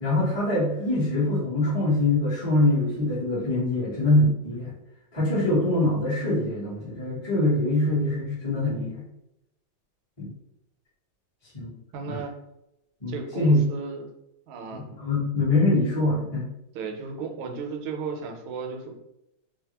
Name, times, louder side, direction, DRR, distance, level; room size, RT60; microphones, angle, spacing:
voice 1, 0.0-4.7 5.1-9.0 10.2-10.3 11.5-11.7 12.1-12.2 13.0-13.6 14.7-16.4, left 2 dB, 25° left, -9 dB, 0.5 m, -24 dB
voice 2, 11.9-12.3 13.1-14.1 14.5-14.9 16.7-19.0, right 5 dB, 80° right, 3 dB, 1.4 m, -35 dB
3.4 x 2.1 x 2.8 m, 0.86 s
omnidirectional pair, 2.3 m